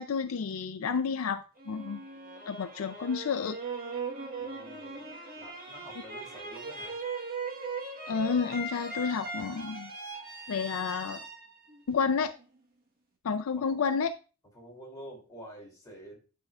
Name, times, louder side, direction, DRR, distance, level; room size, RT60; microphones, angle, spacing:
voice 1, 0.0-2.0 2.5-3.6 8.1-9.9 10.5-11.2 11.9-12.3 13.2-14.1, left 5 dB, 70° left, 0.4 m, -30 dB
sound 1, 1.6-12.6, right 3 dB, 45° right, 1.3 m, -39 dB
voice 2, 4.4-7.0 10.7-11.1 13.5-13.8 14.5-16.2, equal, 15° left, 2.8 m, -49 dB
9.9 x 5.4 x 2.4 m
head